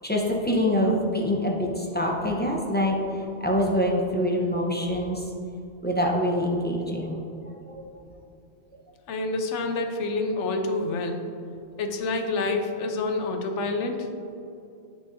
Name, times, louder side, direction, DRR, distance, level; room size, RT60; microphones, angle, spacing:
voice 1, 0.0-5.2 5.8-7.2 7.5-7.8, equal, 10° left, -2 dB, 0.5 m, -25 dB
voice 2, 9.1-11.2 11.8-14.0, left 3 dB, 85° left, 5 dB, 1.0 m, -27 dB
8.2 x 6.3 x 2.6 m, 2.7 s
omnidirectional pair, 1.2 m